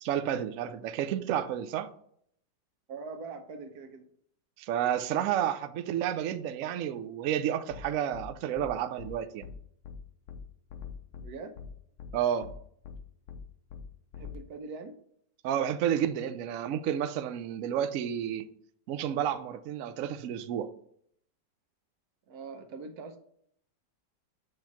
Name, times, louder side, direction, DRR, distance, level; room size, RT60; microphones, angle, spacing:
voice 1, 0.0-1.9 4.6-9.5 12.1-12.5 15.4-18.5 18.9-20.7, right 10 dB, 85° right, 0.7 m, -31 dB
voice 2, 2.9-4.0 11.2-11.5 14.2-14.9 22.3-23.2, right 4 dB, 65° right, 1.1 m, -42 dB
sound 1, 7.7-7.8 8.1-8.3 8.6-8.7 9.0-9.1 9.4-9.5 9.8-10.0 10.3-10.4 10.7-11.3 11.6-11.7 12.0-12.1 12.4-12.5 12.8-13.0 13.3-13.4 13.7-13.8 14.1-14.4, left 7 dB, 65° left, 1.1 m, -43 dB
6.7 x 3.1 x 5.8 m
omnidirectional pair, 2.0 m